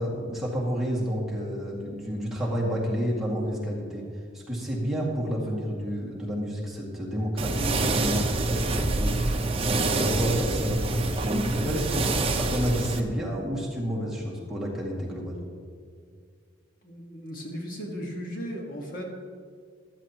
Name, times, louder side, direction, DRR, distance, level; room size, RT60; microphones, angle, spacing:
voice 1, 0.0-4.0 4.3-15.4, equal, ahead, -5 dB, 2.1 m, -30 dB
sound 1, 7.4-13.0, right 2 dB, 30° right, 0.8 m, -26 dB
voice 2, 16.8-19.0, equal, 45° left, 0 dB, 1.7 m, -36 dB
15.0 x 12.5 x 3.0 m, 2.1 s
head